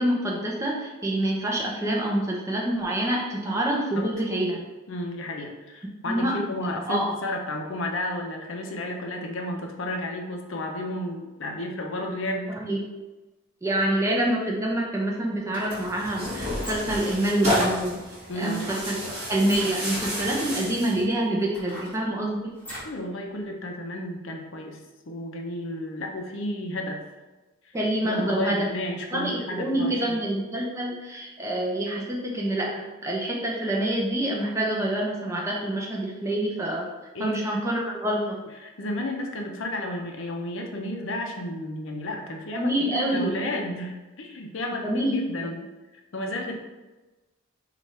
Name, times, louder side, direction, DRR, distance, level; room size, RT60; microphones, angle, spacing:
voice 1, 0.0-4.6 6.1-6.3 6.9-7.1 12.6-12.8 13.6-18.0 18.4-19.0 19.3-22.5 27.7-28.7 29.1-36.9 37.2-38.4 42.5-43.4 44.8-45.3, right 1 dB, 15° right, -3 dB, 0.6 m, -26 dB
voice 2, 4.9-12.6 18.3-18.7 22.8-24.8 25.1-27.0 28.0-30.2 35.3-35.4 37.1-37.6 38.6-45.6 46.1-46.6, left 1 dB, 60° left, 2 dB, 0.6 m, -32 dB
sound 1, 15.3-16.0 16.5-17.1 18.5-18.9 19.4-19.7 20.4-20.5 21.1-23.0 23.4-23.5, equal, 10° left, 1.2 m, -41 dB
Tearing, 15.7-21.0, left 1 dB, 30° right, 1.3 m, -31 dB
3.3 x 2.5 x 4.1 m, 1.1 s
head